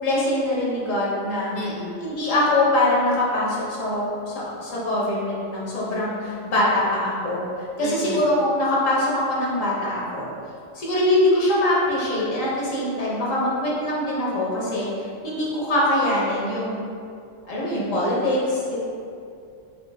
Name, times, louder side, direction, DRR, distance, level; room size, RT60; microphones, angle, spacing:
voice 1, 0.0-1.6 2.0-7.4 7.8-10.3 10.7-16.8 17.5-18.8, left 1 dB, 80° left, -6 dB, 1.5 m, -23 dB
voice 2, 1.5-2.0 7.8-8.2, equal, 50° left, -2 dB, 0.7 m, -32 dB
5.9 x 2.5 x 3.5 m, 2.4 s
omnidirectional pair, 1.3 m